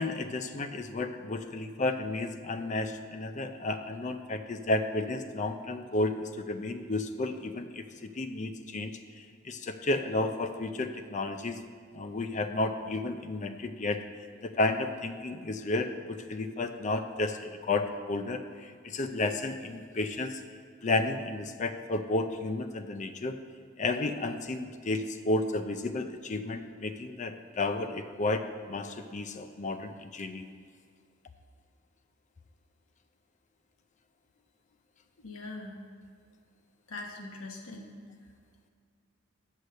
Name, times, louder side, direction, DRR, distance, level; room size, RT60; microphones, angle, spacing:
voice 1, 0.0-11.6 11.9-14.0 14.4-20.4 20.8-23.4 23.8-30.5, left 2 dB, 35° left, 8 dB, 0.4 m, -32 dB
voice 2, 35.2-35.8 36.9-37.9, left 2 dB, 80° left, 1 dB, 1.4 m, -41 dB
8.3 x 6.5 x 6.4 m, 2.2 s
head